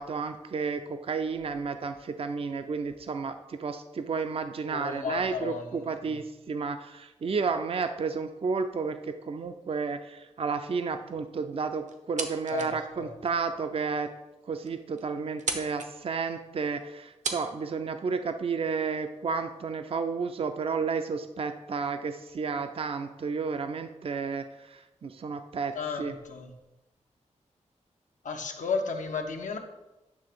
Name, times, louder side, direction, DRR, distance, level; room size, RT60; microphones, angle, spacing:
voice 1, 0.0-14.1 14.5-26.2, right 5 dB, 50° right, 8 dB, 0.5 m, -32 dB
voice 2, 4.7-5.6 6.0-6.2 12.5-13.1 25.7-26.5 28.2-29.6, left 5 dB, 85° left, 4 dB, 1.0 m, -33 dB
sound 1, 11.9-12.8 13.2-13.3 14.0-14.1 14.4-14.5 14.7-15.0 15.3-15.9 16.8-16.9 17.2-17.4, right 4 dB, 75° right, 0.9 m, -34 dB
9.5 x 3.4 x 6.7 m, 1.0 s
wide cardioid pair, 125°, 13 cm